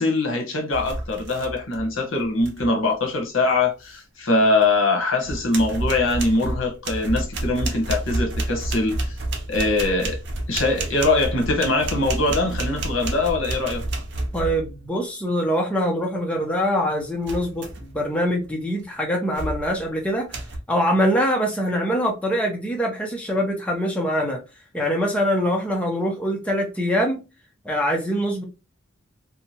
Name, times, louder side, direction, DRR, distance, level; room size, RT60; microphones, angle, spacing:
voice 1, 0.0-9.2 9.5-10.2 10.5-13.8, left 2 dB, 80° left, 0.9 m, -22 dB
sound 1, 0.7-1.9 2.2-2.7 4.6-4.7 5.2-14.8 17.2-18.0 18.4-18.7 19.4-19.8 20.3-20.6, right 1 dB, 60° right, 0.6 m, -29 dB
voice 2, 14.3-20.4 20.7-24.4 24.7-27.2 27.6-28.4, equal, 5° left, 0.5 m, -23 dB
2.7 x 2.2 x 2.8 m
head